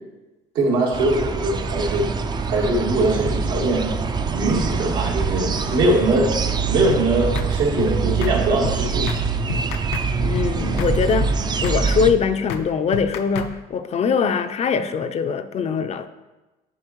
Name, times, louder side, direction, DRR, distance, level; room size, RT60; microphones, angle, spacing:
voice 1, 0.5-2.1 2.4-3.9 4.3-9.7, right 2 dB, 80° right, 1.8 m, -22 dB
sound 1, 0.9-12.1, right 5 dB, 25° right, 0.4 m, -24 dB
sound 2, 6.9-7.1 7.4-7.5 7.8-7.9 8.2-8.4 8.6-8.8 9.1-9.2 9.5-10.1 10.3-10.5 10.8-10.9 11.2-11.4 11.6-11.8 12.1-12.2 12.5-12.7 12.9-13.5, left 7 dB, 90° left, 0.5 m, -29 dB
voice 2, 10.2-16.1, left 6 dB, 40° left, 0.4 m, -22 dB
9.9 x 4.3 x 3.1 m
cardioid pair, 110°, 17 cm